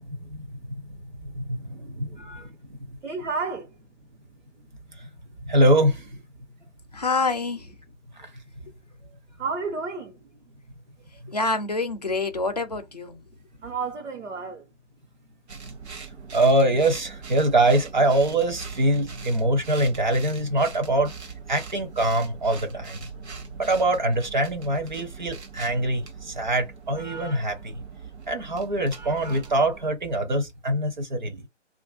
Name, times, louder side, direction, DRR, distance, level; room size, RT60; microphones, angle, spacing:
voice 1, 0.1-2.5 5.0-5.1 5.4-6.0 8.2-8.3 16.3-21.1 21.5-23.0 23.6-27.8 28.3-31.4, right 1 dB, 40° right, 0.5 m, -24 dB
voice 2, 1.8-2.3 2.6-4.2 4.6-5.2 6.9-7.0 8.8-8.9 9.3-10.6 13.5-14.7 15.2-15.4 15.7-15.9, right 4 dB, 85° right, 1.1 m, -34 dB
voice 3, 6.9-7.7 11.3-13.2, left 3 dB, 35° left, 0.4 m, -26 dB
sound 1, 15.5-29.9, right 4 dB, 65° right, 0.9 m, -41 dB
2.7 x 2.5 x 2.2 m
figure-of-eight pair, 160°, 36 cm